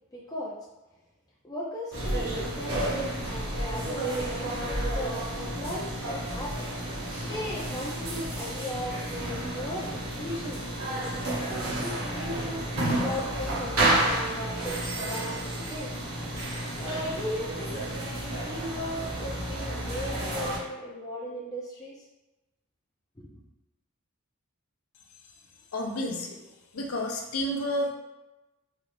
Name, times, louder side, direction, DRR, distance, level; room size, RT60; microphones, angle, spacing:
voice 1, 0.1-0.5 1.4-4.3 5.0-6.7 7.2-10.6 11.4-15.4 15.7-16.0 16.8-17.8 18.4-22.0 23.2-23.3, equal, 15° left, -5 dB, 0.4 m, -37 dB
sound 1, 1.9-20.6, right 1 dB, 70° right, 1.2 m, -31 dB
voice 2, 25.7-26.4 26.7-27.9, left 1 dB, 70° left, 1 dB, 0.6 m, -30 dB
3.8 x 2.4 x 3.2 m, 1.1 s
head